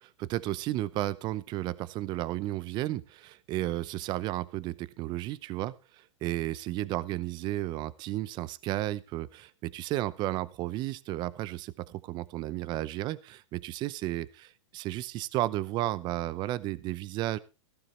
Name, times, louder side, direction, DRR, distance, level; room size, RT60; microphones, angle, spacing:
voice 1, 0.0-17.4, right 15 dB, 30° right, 19 dB, 0.7 m, -33 dB
15.0 x 13.5 x 3.3 m, 0.29 s
hypercardioid pair, 135°, 16 cm